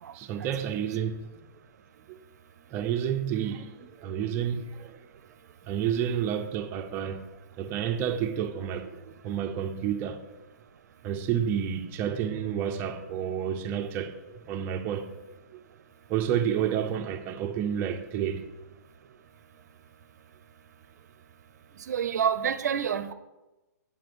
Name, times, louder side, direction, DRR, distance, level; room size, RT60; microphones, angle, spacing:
voice 1, 0.1-1.3 2.1-2.2 2.7-5.0 5.7-7.2 7.6-8.9 9.2-10.2 11.0-14.2 14.5-15.1 15.5-15.6 16.1-18.5, right 9 dB, 25° right, 0.7 m, -30 dB
voice 2, 21.9-23.1, right 8 dB, 65° right, 0.7 m, -28 dB
7.6 x 6.1 x 6.8 m
hypercardioid pair, 150°, 10 cm